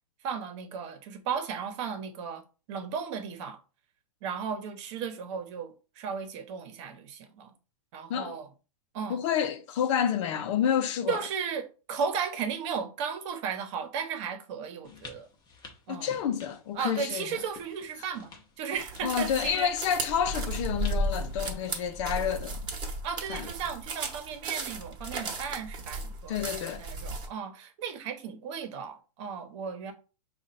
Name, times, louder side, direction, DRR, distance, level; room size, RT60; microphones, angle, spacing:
voice 1, 0.2-2.4 2.7-3.6 4.2-7.5 7.9-8.5 8.9-9.2 11.1-15.3 15.9-16.1 16.7-18.3 18.6-19.7 23.0-29.9, right 6 dB, 50° right, 1.1 m, -35 dB
voice 2, 9.1-11.2 15.9-17.4 19.0-22.6 23.3-23.5 26.3-26.8, left 8 dB, 50° left, 0.7 m, -29 dB
sound 1, 14.8-22.4, left 4 dB, 20° left, 0.9 m, -52 dB
sound 2, 18.8-27.3, right 2 dB, 25° right, 1.2 m, -35 dB
5.0 x 2.5 x 4.1 m
hypercardioid pair, 125°, 20 cm